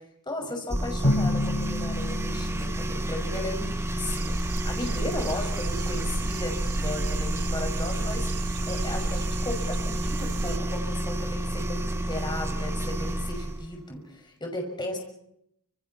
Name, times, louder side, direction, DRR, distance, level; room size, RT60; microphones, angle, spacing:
voice 1, 0.3-15.0, left 1 dB, 20° left, 2 dB, 6.1 m, -36 dB
sound 1, 0.7-13.7, right 1 dB, 10° right, 1.4 m, -30 dB
Drum, 1.0-3.8, left 1 dB, 80° left, 5.2 m, -29 dB
sound 2, 4.0-10.6, right 2 dB, 80° right, 1.6 m, -33 dB
29.0 x 27.5 x 4.4 m, 0.74 s
head